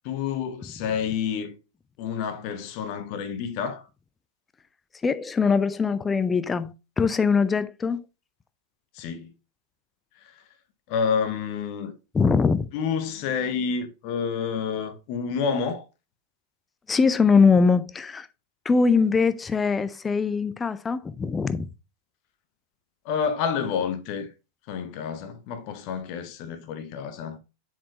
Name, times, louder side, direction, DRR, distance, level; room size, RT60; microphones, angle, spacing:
voice 1, 0.0-1.6 2.0-3.9 8.9-9.3 10.2-10.4 10.9-11.9 12.7-15.8 23.0-24.3 24.7-27.4, left 6 dB, 45° left, 0.9 m, -29 dB
voice 2, 5.0-8.0 12.1-12.7 16.9-18.3 18.7-21.7, left 5 dB, 15° left, 0.5 m, -22 dB
7.1 x 4.9 x 2.9 m
figure-of-eight pair, 90°, 0 cm